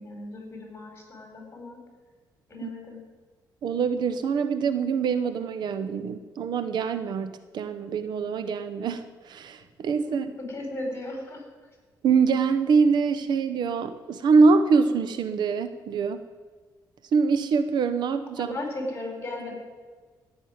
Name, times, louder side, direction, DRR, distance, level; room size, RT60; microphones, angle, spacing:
voice 1, 0.0-1.8 2.5-3.0 10.0-11.4 18.4-19.5, left 2 dB, 30° left, 2 dB, 4.8 m, -36 dB
voice 2, 3.6-10.3 12.0-16.2 17.1-18.6, right 5 dB, 70° right, 11 dB, 0.8 m, -24 dB
15.5 x 6.3 x 9.5 m, 1.4 s
cardioid pair, 105°, 8 cm